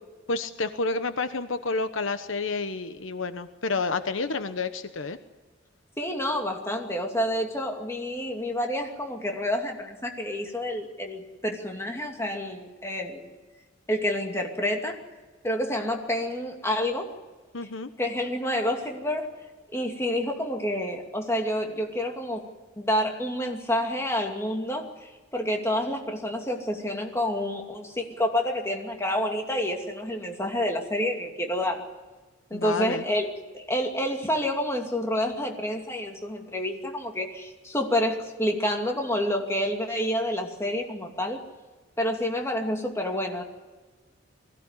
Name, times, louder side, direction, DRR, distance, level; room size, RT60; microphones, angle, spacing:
voice 1, 0.3-5.2 17.5-17.9 32.5-33.0, left 3 dB, 75° left, 10 dB, 1.1 m, -29 dB
voice 2, 6.0-13.3 13.9-15.0 15.4-17.1 18.0-19.3 19.7-22.4 22.8-31.8 32.5-33.3 33.5-41.4 42.0-43.4, left 1 dB, 15° left, 2 dB, 2.6 m, -28 dB
22.0 x 16.0 x 9.8 m, 1.3 s
head